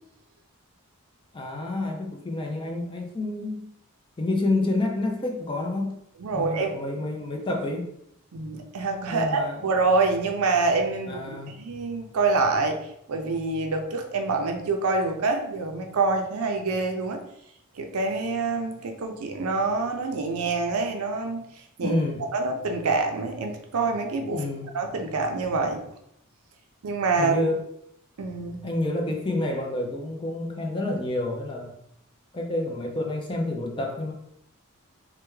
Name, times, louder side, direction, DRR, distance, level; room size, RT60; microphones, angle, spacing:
voice 1, 1.3-3.7 4.2-6.0 6.3-7.9 9.1-9.6 11.1-11.5 21.8-22.2 24.3-24.7 27.2-27.6 28.6-31.8 32.3-34.1, left 2 dB, 20° left, 1 dB, 0.4 m, -28 dB
voice 2, 6.2-6.7 8.3-12.8 13.1-17.2 17.8-21.4 21.8-22.0 22.3-24.4 24.7-25.8 26.8-27.4 28.2-28.6, right 3 dB, 80° right, 4 dB, 0.5 m, -26 dB
3.3 x 2.2 x 3.1 m, 0.76 s
head